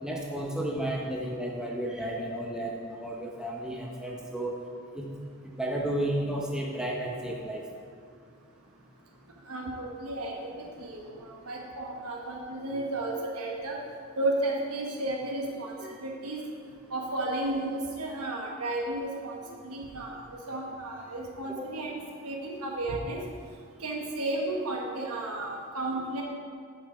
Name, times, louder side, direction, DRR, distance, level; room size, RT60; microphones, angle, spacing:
voice 1, 0.0-4.5 4.9-5.1 5.4-7.6 15.8-15.9 21.5-21.7, right 1 dB, 5° right, -2 dB, 0.7 m, -33 dB
voice 2, 9.5-13.8 14.2-16.4 16.9-23.2 23.8-26.2, right 2 dB, 85° right, -1 dB, 1.1 m, -33 dB
10.5 x 5.5 x 4.9 m, 2.2 s
head